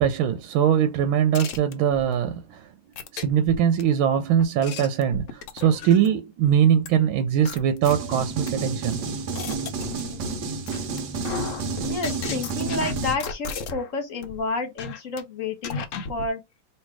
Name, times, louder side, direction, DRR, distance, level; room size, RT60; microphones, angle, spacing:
voice 1, 0.0-2.7 3.1-9.0 9.5-9.6, right 9 dB, 90° right, 1.4 m, -22 dB
sound 1, 1.3-2.1 3.0-3.8 4.4-6.2 6.9-7.0 7.5-8.5 9.0-10.4 10.7-11.0 11.2-13.9 14.2-14.4 14.8-15.2 15.6-16.3, left 5 dB, 75° left, 0.7 m, -34 dB
sound 2, 7.8-13.2, right 4 dB, 65° right, 1.4 m, -30 dB
voice 2, 11.9-15.8 16.1-16.4, left 3 dB, 50° left, 1.1 m, -30 dB
3.2 x 2.9 x 4.6 m
omnidirectional pair, 2.2 m